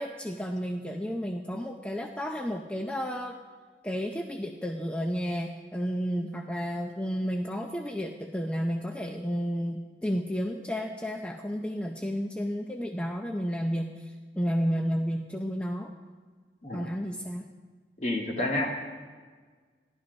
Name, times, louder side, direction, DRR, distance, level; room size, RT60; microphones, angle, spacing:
voice 1, 0.0-3.4 3.8-15.9 16.7-17.5, equal, 5° left, 2 dB, 0.6 m, -32 dB
voice 2, 18.0-18.7, left 1 dB, 40° left, -1 dB, 2.1 m, -29 dB
14.5 x 11.5 x 5.3 m, 1.5 s
head